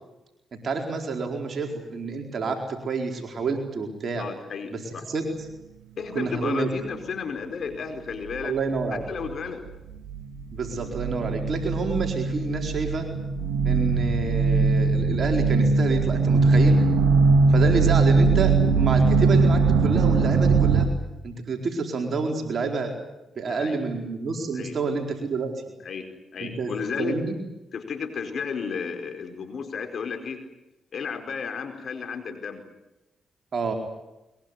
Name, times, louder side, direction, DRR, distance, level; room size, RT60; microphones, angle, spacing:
voice 1, 0.6-4.3 4.7-4.8 5.1-5.3 6.1-6.7 8.4-9.1 10.5-13.1 13.6-16.8 17.5-20.9 21.2-22.9 23.4-25.5 26.4-26.7 27.0-27.4 33.5-33.7, right 4 dB, 60° right, 3 dB, 4.4 m, -28 dB
voice 2, 4.2-5.0 6.0-8.6 8.9-9.6 23.4-23.8 24.5-24.8 25.8-26.1 26.3-27.2 27.7-30.4 30.9-32.6, left 6 dB, 65° left, 6 dB, 4.6 m, -33 dB
sound 1, 8.3-8.4 8.8-9.7 10.0-20.9, right 4 dB, 85° right, 1.7 m, -21 dB
22.0 x 22.0 x 9.8 m, 0.95 s
supercardioid pair, 50°, 0 cm